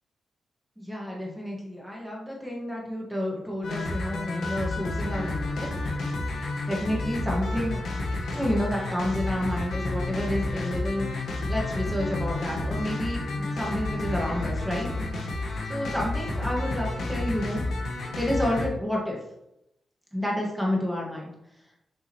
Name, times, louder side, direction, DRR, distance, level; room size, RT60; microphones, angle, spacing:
voice 1, 0.8-5.7 6.7-7.8 8.2-14.9 15.7-17.6 18.2-19.2 20.1-21.3, left 1 dB, 5° right, -3 dB, 1.8 m, -30 dB
sound 1, 3.6-18.7, left 2 dB, 75° left, 1.4 m, -30 dB
7.1 x 5.4 x 3.1 m, 0.83 s
wide cardioid pair, 140°, 0 cm